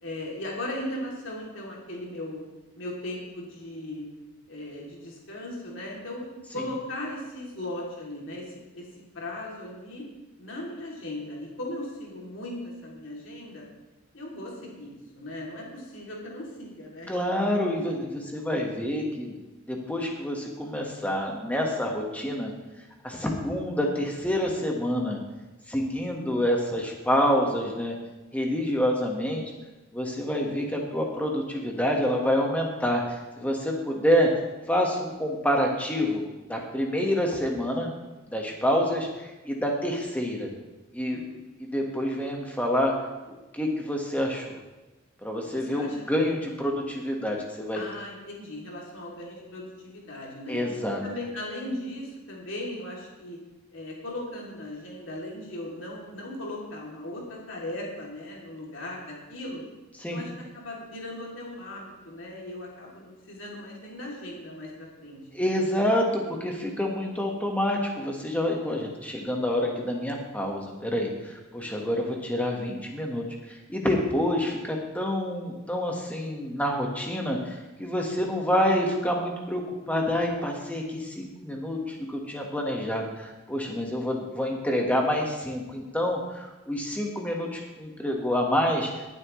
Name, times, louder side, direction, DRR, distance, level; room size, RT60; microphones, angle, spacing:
voice 1, 0.0-2.4 2.7-4.1 4.5-6.3 6.5-8.9 9.1-10.0 10.4-13.7 14.1-17.1 38.5-38.8 41.1-41.4 45.4-46.3 47.7-50.6 51.0-53.4 53.7-59.6 60.1-65.4, left 1 dB, 65° left, -3 dB, 2.9 m, -38 dB
voice 2, 17.1-19.4 19.7-22.5 23.0-25.2 25.7-27.9 28.3-29.4 29.9-34.4 34.7-36.2 36.5-37.9 38.3-40.5 40.9-41.2 41.7-42.9 43.5-44.6 45.2-47.8 50.5-51.0 60.0-60.2 65.3-88.9, equal, 5° left, 0 dB, 1.5 m, -27 dB
20.0 x 7.5 x 3.2 m, 1.1 s
head